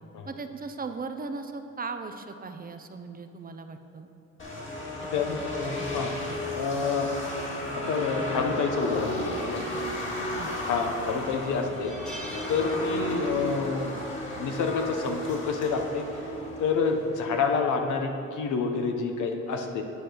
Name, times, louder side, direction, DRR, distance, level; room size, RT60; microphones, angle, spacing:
voice 1, 0.3-4.1 5.0-6.4 10.4-10.5 12.7-12.8, right 4 dB, 30° right, 7 dB, 0.6 m, -39 dB
sound 1, 4.4-17.4, left 1 dB, 40° left, 2.1 m, -34 dB
voice 2, 5.1-6.1 6.5-7.1 7.7-9.6 10.6-11.9 12.5-14.0 14.4-16.1 16.6-19.8, left 5 dB, 80° left, 4 dB, 1.0 m, -28 dB
sound 2, 11.7-13.5 13.8-14.0 15.2-15.5, right 1 dB, 5° left, 1.3 m, -44 dB
9.7 x 5.1 x 6.1 m, 2.8 s
cardioid pair, 90°, 30 cm